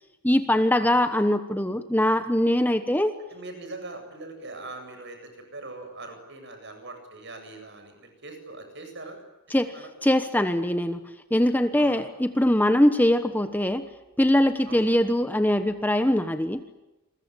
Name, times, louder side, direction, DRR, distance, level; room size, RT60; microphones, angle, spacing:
voice 1, 0.2-3.1 9.5-9.7 10.0-11.0 11.3-13.8 14.2-16.6, left 1 dB, 10° left, 9 dB, 1.1 m, -22 dB
voice 2, 3.3-5.2 5.5-9.2 9.5-9.9 11.8-12.0 14.7-14.9, right 2 dB, 50° right, 6 dB, 7.8 m, -41 dB
28.5 x 22.0 x 9.2 m, 1.0 s
head